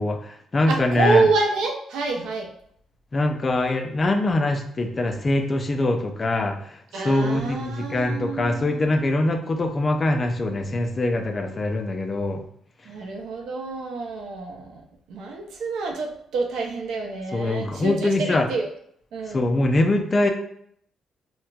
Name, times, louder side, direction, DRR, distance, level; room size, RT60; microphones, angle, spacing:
voice 1, 0.0-1.2 3.1-12.4 17.3-18.5 19.3-20.3, left 2 dB, 35° left, 5 dB, 0.5 m, -23 dB
voice 2, 0.7-2.5 6.9-8.9 12.8-14.8 15.1-18.7 19.1-19.5, right 3 dB, 80° right, 1 dB, 0.6 m, -27 dB
4.1 x 2.2 x 2.4 m, 0.66 s
cardioid pair, 90°, 0 cm